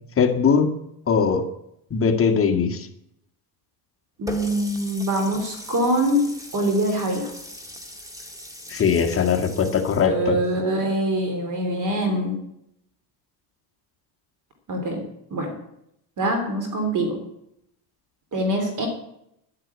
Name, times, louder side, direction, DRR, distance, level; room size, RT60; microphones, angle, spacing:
voice 1, 0.2-0.7 1.1-1.4 1.9-2.9 8.7-10.4, left 6 dB, 30° left, 3 dB, 2.0 m, -20 dB
voice 2, 4.2-6.2 6.5-7.3 10.1-12.4 14.7-15.0 15.3-15.5 16.2-17.2 18.3-18.9, right 1 dB, 45° right, 5 dB, 3.3 m, -24 dB
Water tap faucet, 4.3-10.1, equal, 10° right, 1.9 m, -39 dB
11.0 x 10.5 x 8.5 m, 0.79 s
cardioid pair, 140°, 44 cm